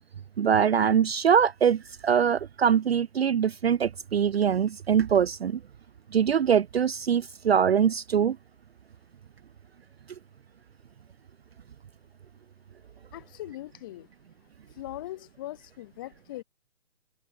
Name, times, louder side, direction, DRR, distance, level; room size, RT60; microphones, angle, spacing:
voice 1, 0.4-5.6 6.1-8.4, right 8 dB, 60° right, 0.5 m, -23 dB
voice 2, 13.1-14.1 14.8-16.4, left 16 dB, 20° left, 3.7 m, -40 dB
hypercardioid pair, 180°, 36 cm